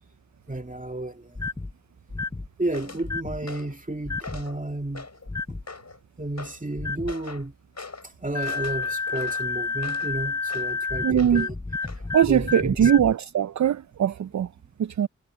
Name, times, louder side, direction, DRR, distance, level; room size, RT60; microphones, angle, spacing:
voice 1, 0.5-1.4 2.6-5.1 5.5-5.6 6.2-7.5 8.0-11.5 12.3-12.9, right 2 dB, 25° right, 2.4 m, -32 dB
sound 1, 1.3-1.7 2.1-2.5 3.0-3.4 4.0-4.4 5.3-5.6 6.8-7.1 8.3-13.1, left 4 dB, 15° left, 0.4 m, -30 dB
sound 2, 2.7-3.0 3.5-3.8 4.2-4.6 4.9-5.3 5.7-6.0 6.4-6.6 7.1-7.5 7.8-8.1 8.4-10.1 10.5-10.7 11.2-11.5 11.9-12.0, left 4 dB, 60° left, 6.1 m, -41 dB
voice 2, 11.0-11.5 12.1-14.5 14.8-15.1, right 9 dB, 70° right, 0.5 m, -21 dB
cardioid pair, 45°, 29 cm